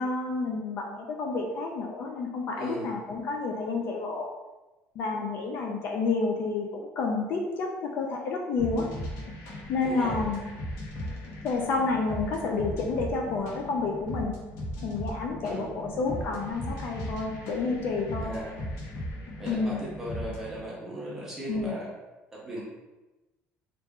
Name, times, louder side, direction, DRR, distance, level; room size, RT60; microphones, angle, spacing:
voice 1, 0.0-4.3 5.0-8.9 9.7-10.4 11.4-14.3 14.8-18.3 19.5-19.8 21.5-21.7, left 3 dB, 45° left, 1 dB, 0.4 m, -30 dB
voice 2, 2.6-2.9 9.8-10.2 15.4-15.7 18.2-18.5 19.4-21.9 22.3-22.6, right 1 dB, 10° right, -6 dB, 0.8 m, -37 dB
sound 1, 8.6-20.6, left 1 dB, 65° left, 0.9 m, -38 dB
3.1 x 2.4 x 3.5 m, 1.1 s
cardioid pair, 180°, 5 cm